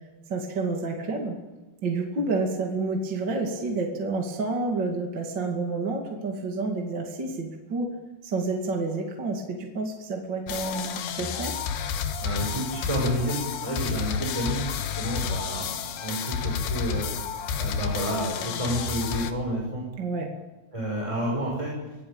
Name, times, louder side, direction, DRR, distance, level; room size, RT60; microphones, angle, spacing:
voice 1, 0.3-1.4 1.8-7.9 8.2-11.5 20.0-20.3, right 3 dB, 35° right, 1 dB, 2.6 m, -29 dB
sound 1, 10.5-19.3, left 7 dB, 85° left, 3.4 m, -30 dB
voice 2, 12.2-17.1 17.5-19.8 20.7-21.7, right 1 dB, 10° right, -2 dB, 5.9 m, -30 dB
25.5 x 17.5 x 8.9 m, 1.1 s
omnidirectional pair, 4.4 m